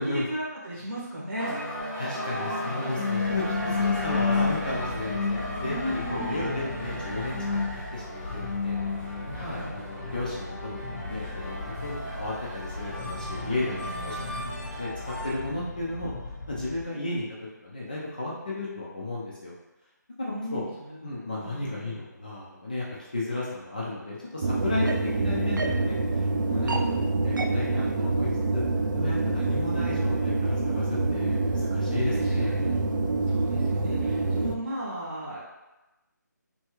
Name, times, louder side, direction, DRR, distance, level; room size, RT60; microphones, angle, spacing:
voice 1, 0.0-1.6 5.6-6.4 9.3-9.7 13.4-14.2 20.3-21.1 21.4-22.0 26.5-27.1 32.1-32.8 33.3-35.4, equal, 45° right, -7 dB, 1.4 m, -36 dB
sound 1, 1.4-15.3, left 3 dB, 10° right, 0.9 m, -32 dB
voice 2, 2.0-5.8 6.1-7.4 7.7-8.8 9.4-14.2 14.6-14.9 15.2-16.1 16.5-17.3 17.6-19.5 20.2-20.6 21.0-22.9 23.1-27.0 27.2-28.6 28.9-32.5, left 2 dB, 25° left, -6 dB, 0.4 m, -34 dB
sound 2, 3.2-16.8, left 2 dB, 80° left, 0.8 m, -39 dB
sound 3, 24.4-34.6, right 2 dB, 75° right, 0.4 m, -26 dB
3.3 x 2.2 x 3.0 m, 1.0 s
figure-of-eight pair, 175°, 10 cm